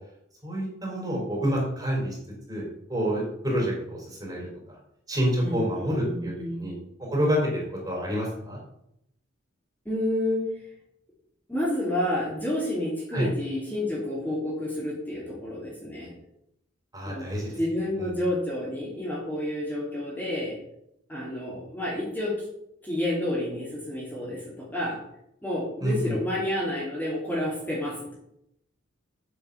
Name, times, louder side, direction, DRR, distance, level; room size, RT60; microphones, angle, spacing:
voice 1, 0.4-2.2 2.5-2.6 2.9-4.8 5.1-6.7 7.1-8.6 13.1-13.3 16.9-17.6 18.0-18.1 25.8-26.1, equal, 20° right, -3 dB, 4.5 m, -28 dB
voice 2, 5.4-6.5 9.8-10.4 11.5-16.1 17.0-20.6 21.1-22.4 22.8-25.0 25.4-28.1, left 1 dB, 10° left, -7 dB, 3.3 m, -30 dB
8.5 x 6.6 x 7.0 m, 0.78 s
head